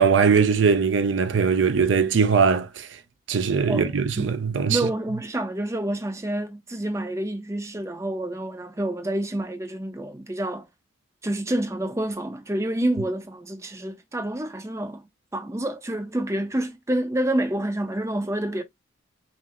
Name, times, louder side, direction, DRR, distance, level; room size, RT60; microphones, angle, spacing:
voice 1, 0.0-2.9 3.3-4.8, right 5 dB, 65° right, 0.5 m, -20 dB
voice 2, 3.7-4.4 4.7-10.7 11.2-15.0 15.3-18.6, right 1 dB, 15° right, 0.5 m, -28 dB
5.6 x 2.0 x 2.9 m
head